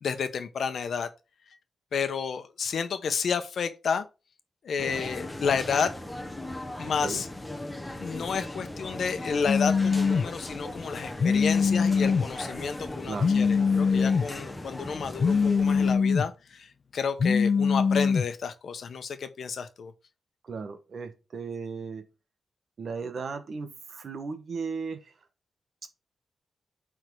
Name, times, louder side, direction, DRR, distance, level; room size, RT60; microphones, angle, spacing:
voice 1, 0.0-1.1 1.9-4.0 4.6-5.9 6.8-7.3 8.0-19.9, left 6 dB, 70° left, 1.0 m, -31 dB
sound 1, 4.8-16.0, left 1 dB, 10° left, 1.1 m, -38 dB
voice 2, 6.8-7.2 13.1-13.3 20.4-22.0 22.8-25.1, right 5 dB, 60° right, 1.2 m, -36 dB
Telephone, 9.5-10.3 11.2-12.2 13.2-14.3 15.2-16.3 17.2-18.2, left 5 dB, 50° left, 0.4 m, -23 dB
9.1 x 3.8 x 4.7 m
wide cardioid pair, 120°, 0 cm